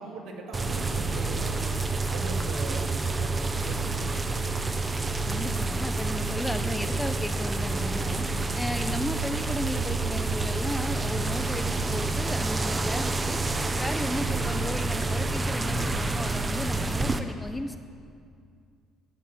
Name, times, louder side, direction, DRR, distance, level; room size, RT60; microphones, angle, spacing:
voice 1, 0.0-4.5 8.3-8.5, right 3 dB, 70° right, 1 dB, 2.3 m, -41 dB
sound 1, 0.5-17.2, right 3 dB, 25° right, 1.0 m, -28 dB
voice 2, 5.2-17.8, left 1 dB, 10° left, 8 dB, 1.0 m, -35 dB
16.5 x 7.1 x 8.3 m, 2.3 s
supercardioid pair, 65°, 0 cm